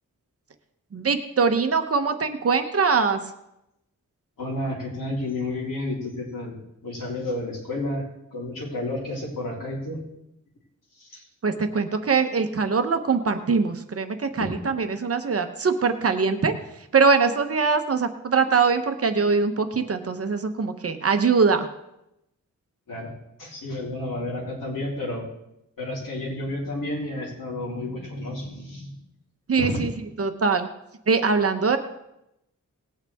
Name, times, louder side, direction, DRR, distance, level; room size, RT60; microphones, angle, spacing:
voice 1, 0.9-3.2 11.4-16.5 16.9-21.7 29.5-29.9 30.2-30.7 31.1-31.8, right 5 dB, 45° right, 7 dB, 0.9 m, -22 dB
voice 2, 4.4-6.5 6.8-8.0 8.3-10.0 11.0-11.2 22.9-23.1 23.4-25.2 25.8-28.9 29.6-29.8, left 1 dB, 85° left, -5 dB, 3.7 m, -31 dB
19.0 x 8.8 x 3.5 m, 0.85 s
wide cardioid pair, 150°, 32 cm